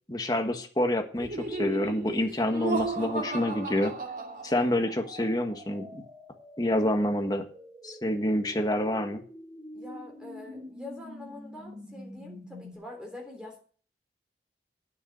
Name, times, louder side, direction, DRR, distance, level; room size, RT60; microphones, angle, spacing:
voice 1, 0.1-3.9 4.4-6.0 6.6-7.5 7.8-9.2, left 1 dB, 20° left, 5 dB, 1.5 m, -27 dB
Laughter, 1.2-4.9, right 2 dB, 50° right, 2.4 m, -34 dB
sound 1, 2.4-12.7, left 1 dB, 25° right, 6.9 m, -47 dB
voice 2, 9.7-13.6, left 2 dB, 5° right, 1 dB, 3.4 m, -44 dB
9.6 x 6.7 x 8.1 m, 0.43 s
head